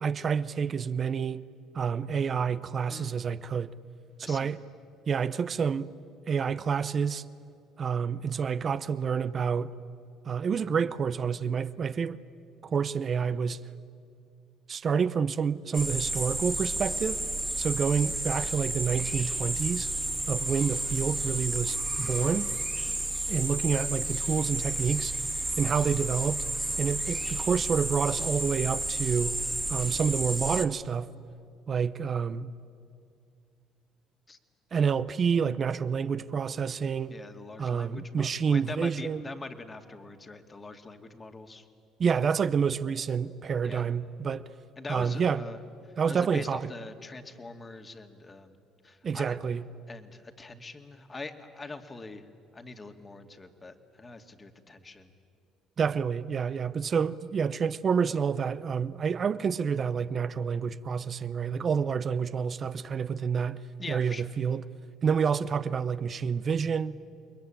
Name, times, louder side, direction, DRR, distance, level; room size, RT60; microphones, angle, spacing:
voice 1, 0.0-1.4 1.7-3.7 4.2-4.6 5.1-5.9 6.3-7.2 7.8-9.7 10.3-12.2 12.6-13.6 14.7-17.2 17.6-19.9 20.3-22.5 23.3-25.1 25.6-26.4 26.8-29.4 29.7-31.1 31.7-32.5 34.7-37.2 37.6-39.3 42.0-44.4 44.9-45.4 46.0-46.7 49.0-49.6 55.8-63.6 63.9-64.6 65.0-67.0, right 6 dB, 45° right, 0.8 m, -28 dB
sound 1, 15.7-30.6, right 2 dB, 10° right, 2.0 m, -31 dB
voice 2, 37.1-41.6 43.6-43.9 44.8-45.6 46.1-48.5 48.8-49.4 49.9-52.2 52.5-55.1 63.8-64.3, left 3 dB, 25° left, 2.2 m, -43 dB
28.5 x 22.0 x 8.9 m
supercardioid pair, 75°, 0 cm